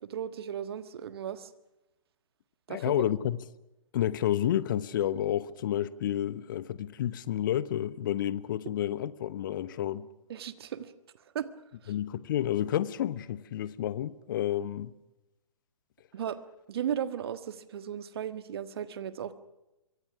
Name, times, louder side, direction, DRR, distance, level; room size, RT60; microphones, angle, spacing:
voice 1, 0.0-1.5 2.7-2.9 10.3-10.9 11.3-11.5 11.8-11.9 16.1-16.4 16.7-19.3, right 9 dB, 45° right, 1.5 m, -35 dB
voice 2, 2.7-3.4 3.9-10.1 11.9-14.9, left 11 dB, 35° left, 0.9 m, -30 dB
26.0 x 23.0 x 6.1 m
figure-of-eight pair, 125°, 18 cm